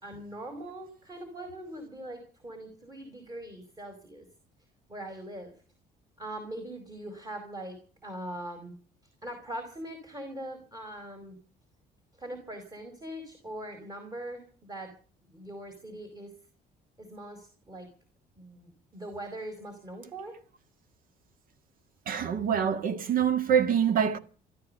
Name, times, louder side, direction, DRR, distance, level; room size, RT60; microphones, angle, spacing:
voice 1, 0.0-4.3 4.9-5.5 6.2-8.8 9.2-11.4 12.1-15.0 15.2-16.3 17.0-17.9 18.3-20.4, right 1 dB, 20° right, 4.8 m, -41 dB
voice 2, 22.1-24.2, right 8 dB, 55° right, 1.9 m, -25 dB
16.0 x 13.5 x 6.7 m
cardioid pair, 110°, 17 cm